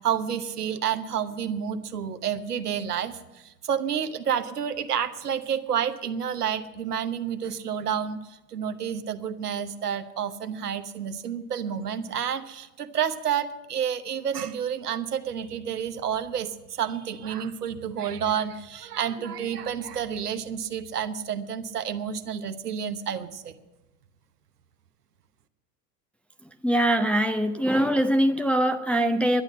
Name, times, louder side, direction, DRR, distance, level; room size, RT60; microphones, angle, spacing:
voice 1, 0.0-23.5, right 8 dB, 75° right, 1.1 m, -30 dB
voice 2, 26.6-29.4, equal, 5° left, 0.5 m, -22 dB
11.5 x 10.5 x 7.5 m
figure-of-eight pair, 80°, 47 cm